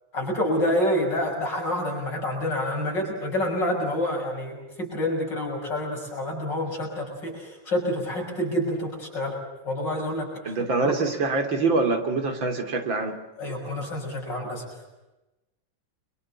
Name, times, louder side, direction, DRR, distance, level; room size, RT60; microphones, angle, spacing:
voice 1, 0.1-9.4 9.6-10.9 13.4-14.7, left 1 dB, 65° left, 0 dB, 7.2 m, -28 dB
voice 2, 10.5-13.2, right 3 dB, 75° right, 6 dB, 3.7 m, -25 dB
29.5 x 24.5 x 7.2 m, 1.0 s
omnidirectional pair, 2.1 m